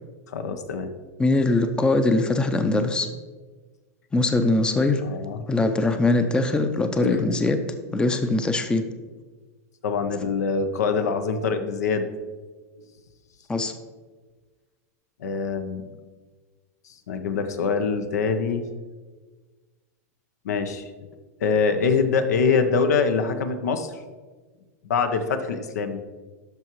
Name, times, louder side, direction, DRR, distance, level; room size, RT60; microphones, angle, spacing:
voice 1, 0.3-0.9 5.0-5.4 7.0-7.3 9.8-12.0 15.2-15.9 17.1-18.6 20.4-20.8 21.4-23.9 24.8-26.0, left 5 dB, 85° left, 8 dB, 0.8 m, -24 dB
voice 2, 1.2-3.1 4.1-5.0 5.5-7.6 7.9-8.9 13.5-13.7, left 2 dB, 10° left, 7 dB, 0.5 m, -22 dB
12.5 x 4.7 x 3.1 m, 1.4 s
hypercardioid pair, 120°, 9 cm